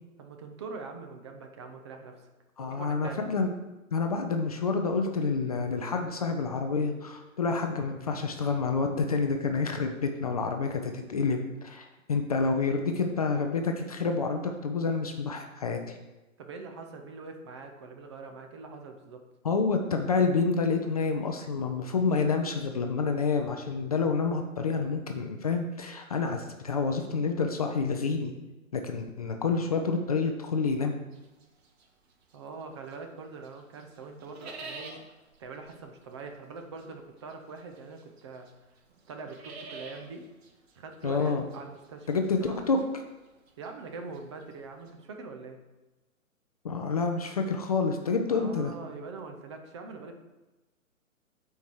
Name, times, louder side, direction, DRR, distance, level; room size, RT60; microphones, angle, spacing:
voice 1, 0.2-2.2 2.6-3.3 16.4-19.2 32.3-38.5 39.1-40.2 40.8-42.1 42.4-42.6 43.6-45.6 48.3-50.2, right 4 dB, 20° right, 4 dB, 0.5 m, -43 dB
voice 2, 2.6-3.5 3.9-16.0 19.4-28.3 28.7-31.0 41.0-41.5 42.1-42.8 46.6-48.7, left 4 dB, 30° left, 4 dB, 0.4 m, -28 dB
sound 1, 31.1-33.1 33.4-44.9, right 3 dB, 45° right, 1.3 m, -49 dB
8.1 x 4.6 x 4.7 m, 1.1 s
figure-of-eight pair, 135°, 42 cm